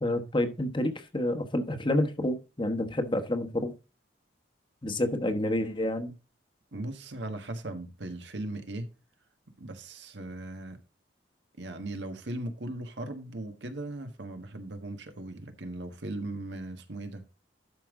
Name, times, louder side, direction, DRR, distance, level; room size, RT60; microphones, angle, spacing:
voice 1, 0.0-3.7 4.8-6.1, left 1 dB, 25° left, 1.1 m, -29 dB
voice 2, 6.7-8.9 9.6-10.8 11.6-17.2, right 1 dB, 75° right, 1.5 m, -38 dB
12.0 x 5.4 x 3.7 m
head